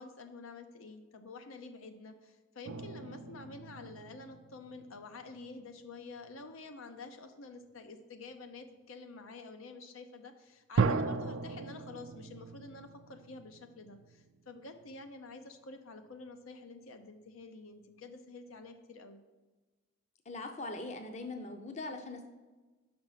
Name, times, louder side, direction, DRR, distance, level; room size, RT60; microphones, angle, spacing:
voice 1, 0.0-19.2, left 3 dB, 90° left, 7 dB, 0.7 m, -49 dB
sound 1, 2.7-5.6 6.2-6.5 10.8-15.1, right 4 dB, 75° right, 0.4 m, -37 dB
voice 2, 20.3-22.3, left 2 dB, 35° left, 5 dB, 0.6 m, -41 dB
5.9 x 5.2 x 5.7 m, 1.2 s
head